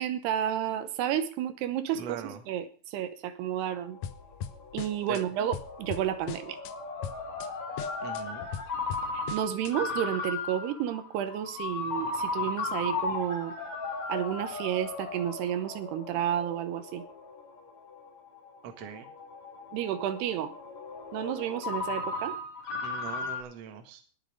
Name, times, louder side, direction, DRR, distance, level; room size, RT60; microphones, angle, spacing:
voice 1, 0.0-4.0 4.7-6.6 9.1-13.5 14.1-17.0 19.7-20.5 21.1-22.4, right 10 dB, 80° right, 11 dB, 3.0 m, -31 dB
voice 2, 2.0-2.4 5.1-5.2 8.0-8.5 18.6-19.1 22.8-24.0, right 8 dB, 50° right, 6 dB, 2.2 m, -41 dB
Ringtone, 3.6-23.4, left 3 dB, 45° left, 4.0 m, -36 dB
sound 1, 4.0-5.2 5.5-6.7 7.0-7.5 7.8-9.7, left 9 dB, 90° left, 1.7 m, -39 dB
19.5 x 6.8 x 5.1 m, 0.40 s
omnidirectional pair, 4.7 m